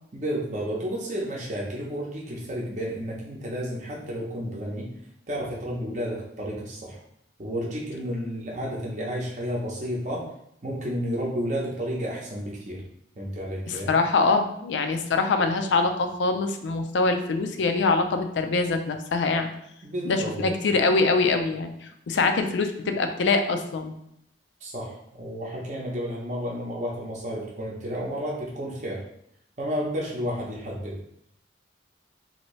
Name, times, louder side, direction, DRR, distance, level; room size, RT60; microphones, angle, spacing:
voice 1, 0.1-4.9 5.3-7.0 7.4-10.3 10.6-12.8 13.2-13.9 19.8-20.5 24.6-29.0 29.6-30.9, equal, 40° right, -4 dB, 0.7 m, -31 dB
voice 2, 13.7-19.5 20.0-23.9, left 3 dB, 80° left, 6 dB, 0.4 m, -24 dB
2.8 x 2.6 x 3.0 m, 0.75 s
head